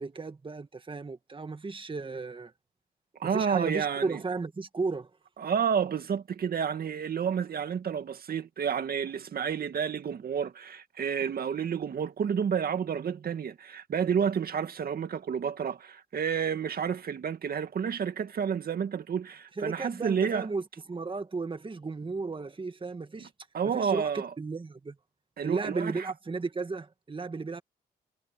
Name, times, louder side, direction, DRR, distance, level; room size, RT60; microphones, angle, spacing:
voice 1, 0.0-2.5 3.2-5.1 19.6-23.3 23.7-25.0 25.4-27.6, right 4 dB, 30° right, 2.0 m, -34 dB
voice 2, 3.2-4.2 5.4-20.5 23.2-23.3 23.5-24.3 25.4-26.1, right 7 dB, 60° right, 2.1 m, -30 dB
cardioid pair, 65°, 17 cm